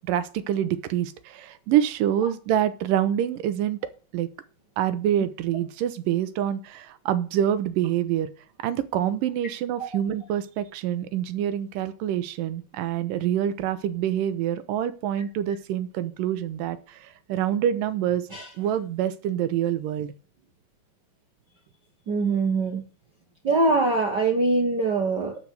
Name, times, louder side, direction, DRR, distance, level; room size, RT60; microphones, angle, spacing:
voice 1, 0.1-3.8 4.1-4.3 4.8-8.3 8.6-18.3 18.6-20.1, right 10 dB, 90° right, 13 dB, 2.5 m, -26 dB
voice 2, 22.1-22.8 23.4-25.5, right 3 dB, 45° right, 2 dB, 1.4 m, -23 dB
12.5 x 4.7 x 7.7 m, 0.37 s
omnidirectional pair, 3.8 m